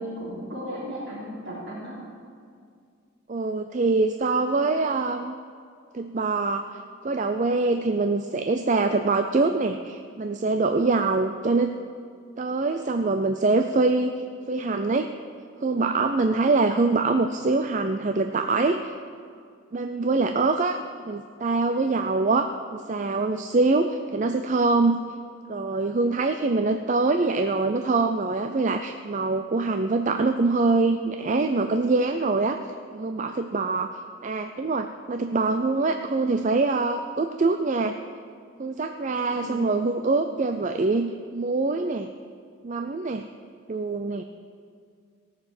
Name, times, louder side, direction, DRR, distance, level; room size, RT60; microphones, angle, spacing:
voice 1, 0.0-2.0 39.3-39.8, equal, 55° right, -10 dB, 3.7 m, -35 dB
voice 2, 3.3-5.3 5.9-6.7 7.0-11.7 12.4-14.1 14.5-15.1 15.6-18.9 19.7-20.8 21.0-25.0 25.5-32.6 32.9-38.0 38.6-42.1 42.6-43.3 43.7-44.2, right 3 dB, 35° right, 7 dB, 0.4 m, -24 dB
17.5 x 6.7 x 7.7 m, 2.2 s
head